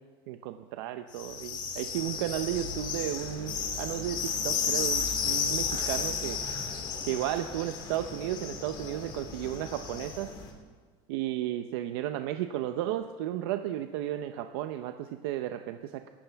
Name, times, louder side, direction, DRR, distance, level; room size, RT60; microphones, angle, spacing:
voice 1, 0.3-6.4 7.0-10.3 11.1-16.1, right 13 dB, 85° right, 8 dB, 0.7 m, -34 dB
sound 1, 1.1-10.5, left 6 dB, 35° left, 2.0 m, -33 dB
24.0 x 13.0 x 3.5 m, 1.5 s
cardioid pair, 165°, 13 cm